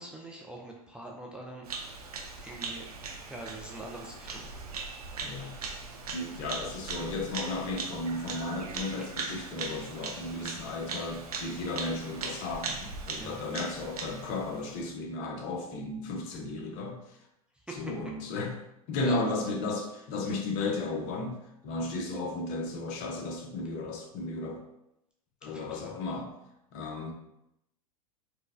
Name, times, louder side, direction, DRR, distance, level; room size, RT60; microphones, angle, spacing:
voice 1, 0.0-1.7 2.4-2.9 3.3-4.5 9.0-9.1 13.2-13.4 17.7-17.8 19.0-19.2 25.5-25.9, right 1 dB, 5° right, -1 dB, 0.3 m, -43 dB
Bird vocalization bird call bird song, 1.6-14.9, right 4 dB, 90° right, 0.6 m, -39 dB
voice 2, 5.2-5.6 6.1-17.2 17.7-18.6 18.9-24.6 25.4-26.3 26.7-27.1, left 2 dB, 45° left, 3 dB, 0.6 m, -34 dB
4.4 x 2.1 x 2.4 m, 0.84 s
hypercardioid pair, 105°, 19 cm